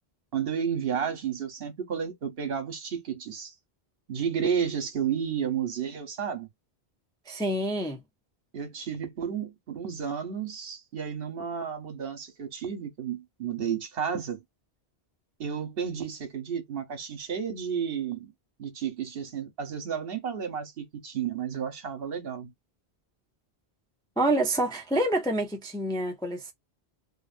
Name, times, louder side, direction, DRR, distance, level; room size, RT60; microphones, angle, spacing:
voice 1, 0.3-3.5 4.1-6.5 8.5-14.4 15.4-18.3 18.6-22.5, right 7 dB, 65° right, 1.1 m, -32 dB
voice 2, 7.3-8.0 24.2-26.5, right 1 dB, 5° left, 0.4 m, -27 dB
2.6 x 2.6 x 2.4 m
omnidirectional pair, 1.1 m